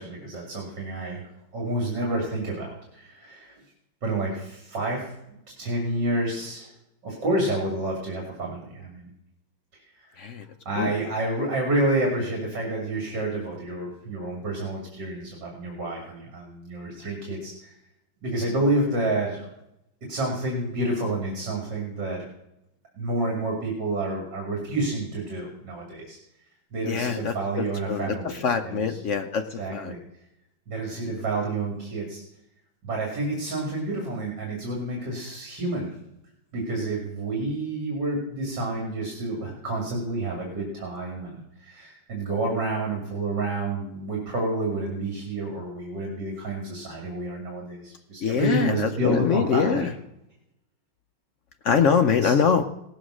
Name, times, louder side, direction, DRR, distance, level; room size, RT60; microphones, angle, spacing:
voice 1, 0.0-3.5 4.0-5.1 5.6-6.7 7.0-9.1 10.0-10.2 10.6-17.7 18.2-19.5 20.1-22.2 22.9-26.2 26.7-29.0 29.6-30.0 30.7-32.2 32.8-35.9 36.5-49.9 52.2-52.3, right 2 dB, 60° right, -1 dB, 3.2 m, -29 dB
voice 2, 26.8-27.3 27.9-29.9 48.2-49.9 51.6-52.6, left 6 dB, 85° left, 7 dB, 0.6 m, -24 dB
17.5 x 7.3 x 6.3 m, 0.84 s
omnidirectional pair, 2.2 m